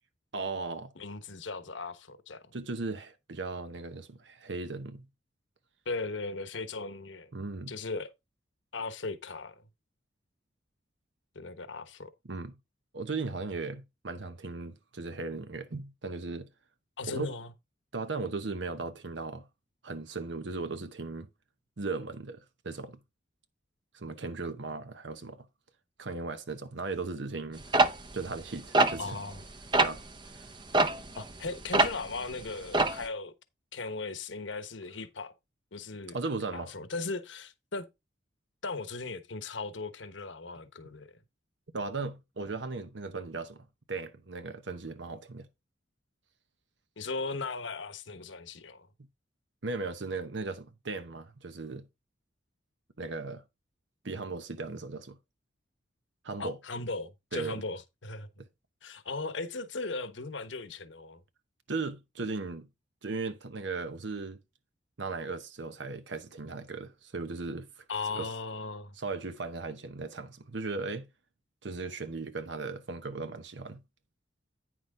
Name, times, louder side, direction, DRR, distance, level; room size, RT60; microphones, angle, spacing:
voice 1, 0.3-0.9 2.5-5.1 7.3-7.7 12.3-12.5 12.9-16.5 17.1-17.4 17.9-19.5 19.8-21.3 21.8-23.0 23.9-25.5 26.0-27.7 28.1-29.2 29.8-30.0 36.1-36.7 41.7-45.5 49.6-51.8 53.0-53.4 54.0-55.2 56.2-56.6 57.3-57.6 58.4-58.5 61.7-62.7 63.0-64.4 65.0-67.8 68.2-68.3 69.0-71.1 71.6-73.8, right 3 dB, 75° right, 0.9 m, -37 dB
voice 2, 1.0-2.4 5.8-7.3 7.7-8.1 8.7-9.6 11.3-12.1 17.0-17.5 29.0-29.4 31.2-33.3 33.7-35.3 35.7-36.2 36.5-37.9 38.6-41.1 47.0-48.9 56.4-58.3 58.8-61.2 67.9-69.0, left 3 dB, 80° left, 1.1 m, -37 dB
sound 1, 27.7-29.4 29.7-30.0 30.7-32.2 32.4-33.1, right 2 dB, 25° right, 0.6 m, -24 dB
9.4 x 6.1 x 3.7 m
head